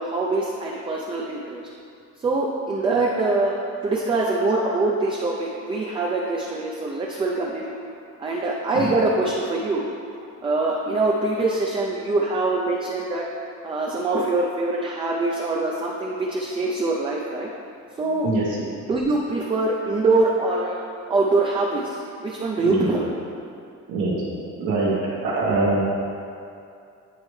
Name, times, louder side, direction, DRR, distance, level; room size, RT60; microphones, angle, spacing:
voice 1, 0.0-1.6 2.2-3.5 3.8-7.7 8.2-9.8 10.4-13.2 13.6-17.5 18.0-18.3 18.9-20.8 21.1-23.1, right 2 dB, 20° right, -3 dB, 0.4 m, -24 dB
voice 2, 18.2-18.7 22.6-22.9 23.9-24.2 24.6-24.9 25.2-25.8, right 2 dB, 75° right, -7 dB, 1.2 m, -23 dB
9.5 x 4.3 x 3.1 m, 2.5 s
cardioid pair, 165°, 30 cm